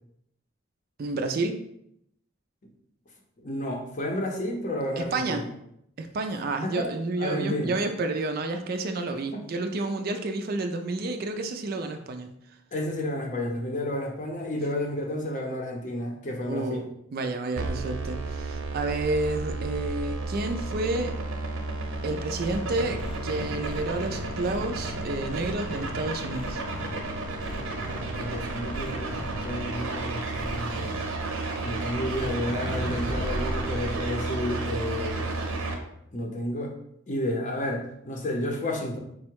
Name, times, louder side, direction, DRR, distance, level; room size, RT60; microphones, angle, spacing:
voice 1, 1.0-1.6 5.0-5.5 6.0-12.3 16.5-21.2 22.0-26.6, right 2 dB, 45° right, 6 dB, 0.4 m, -30 dB
voice 2, 3.4-5.5 6.6-6.9 7.2-7.7 9.3-9.4 12.7-16.8 28.1-29.2 29.4-30.9 31.6-35.4 36.1-36.7 37.1-39.0, left 1 dB, 35° left, 1 dB, 0.7 m, -31 dB
sound 1, 17.6-35.7, right 3 dB, 85° right, 0.7 m, -32 dB
sound 2, 22.4-25.0 25.3-25.9 26.3-26.9 27.4-28.0 28.7-29.3 30.4-30.9 32.1-34.0, equal, ahead, 0.6 m, -37 dB
4.6 x 2.1 x 4.5 m, 0.76 s
head